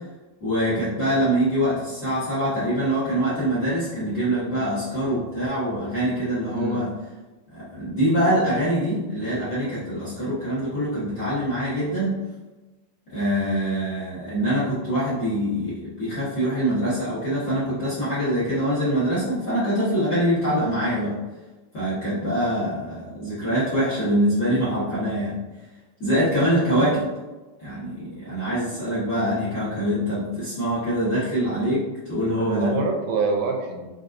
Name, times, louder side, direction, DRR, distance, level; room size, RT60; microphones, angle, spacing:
voice 1, 0.4-6.9 7.5-12.1 13.1-21.1 21.7-25.4 26.0-27.0 27.6-32.7, equal, 45° left, -11 dB, 1.5 m, -24 dB
voice 2, 6.5-6.8 32.4-33.9, right 4 dB, 80° right, 2 dB, 2.1 m, -26 dB
5.1 x 4.0 x 2.5 m, 1.2 s
omnidirectional pair, 3.9 m